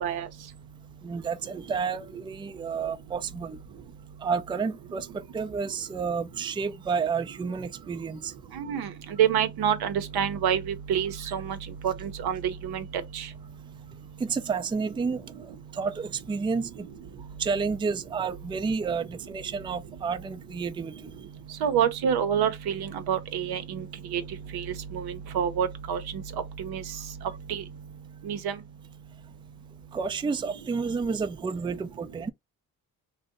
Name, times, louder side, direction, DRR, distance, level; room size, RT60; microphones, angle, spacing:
voice 1, 1.0-3.6 4.2-8.3 14.2-16.9 17.4-20.9 27.3-27.4 29.9-32.3, right 5 dB, 15° right, 0.3 m, -30 dB
voice 2, 8.6-8.9 9.2-11.6 11.8-12.8 13.1-13.2 21.6-23.8 24.1-24.2 24.5-24.6 24.9-26.0 26.6-26.8 27.5-27.6 28.3-28.5, right 8 dB, 80° right, 0.7 m, -27 dB
2.6 x 2.1 x 3.7 m
cardioid pair, 65°, 37 cm